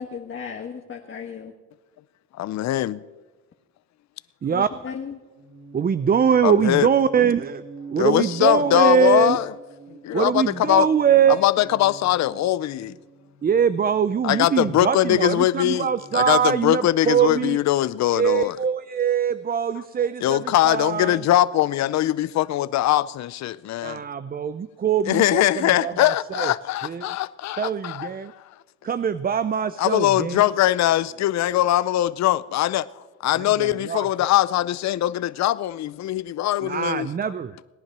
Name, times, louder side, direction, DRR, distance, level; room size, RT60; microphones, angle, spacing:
voice 1, 0.0-1.5 4.5-5.2, left 6 dB, 40° left, 1.4 m, -35 dB
voice 2, 2.4-3.0 6.4-6.9 8.0-9.5 10.0-10.9 11.4-12.9 14.2-15.9 16.1-18.6 20.2-24.0 25.1-28.1 29.8-32.9 33.2-37.1, left 14 dB, 65° left, 0.6 m, -21 dB
sound 1, 5.4-17.4, right 4 dB, 65° right, 3.3 m, -46 dB
voice 3, 5.7-7.6 7.9-9.4 10.1-11.4 13.4-17.6 18.1-21.2 23.8-26.5 26.8-27.1 27.6-28.3 28.8-30.4 33.4-34.1 36.6-37.7, right 7 dB, 30° right, 0.5 m, -22 dB
18.5 x 10.5 x 6.1 m
cardioid pair, 90°, 30 cm